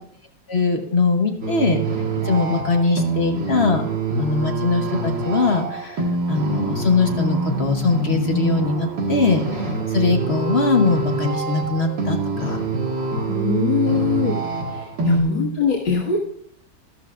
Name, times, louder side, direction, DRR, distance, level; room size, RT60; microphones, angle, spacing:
voice 1, 0.5-1.8 2.2-3.8 4.2-12.6 15.0-15.6, left 3 dB, 40° left, 4 dB, 1.1 m, -21 dB
sound 1, 1.4-15.2, right 3 dB, 80° right, 2.4 m, -25 dB
voice 2, 13.3-14.4 14.7-16.2, left 6 dB, 90° left, -5 dB, 2.4 m, -22 dB
14.0 x 12.5 x 2.5 m, 0.64 s
omnidirectional pair, 2.0 m